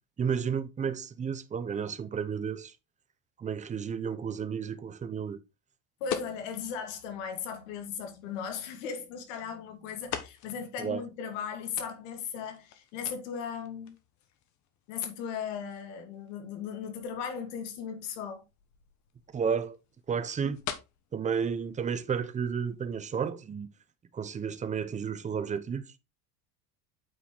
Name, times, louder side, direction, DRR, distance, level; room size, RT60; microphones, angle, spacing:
voice 1, 0.2-2.7 3.4-5.4 10.8-11.0 19.3-19.8 20.1-20.6 21.1-23.7 24.1-25.9, right 6 dB, 20° right, 0.7 m, -32 dB
voice 2, 6.0-13.9 14.9-18.4, left 7 dB, 85° left, 2.0 m, -37 dB
sound 1, 6.0-23.0, left 10 dB, 50° left, 1.3 m, -46 dB
8.6 x 4.5 x 3.8 m
cardioid pair, 135°, 37 cm